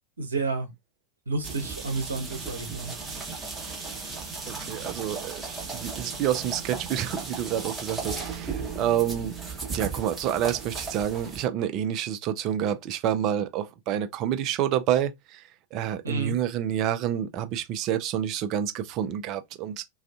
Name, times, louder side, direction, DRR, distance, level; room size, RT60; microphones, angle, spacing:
voice 1, 0.2-0.7 1.3-2.9 16.0-16.4, right 3 dB, 75° right, 0.8 m, -30 dB
sound 1, 1.4-11.4, right 4 dB, 10° right, 0.9 m, -36 dB
voice 2, 4.4-5.4 5.7-9.4 9.7-19.8, right 10 dB, 40° right, 0.4 m, -28 dB
2.4 x 2.4 x 2.3 m
figure-of-eight pair, 90°, 0 cm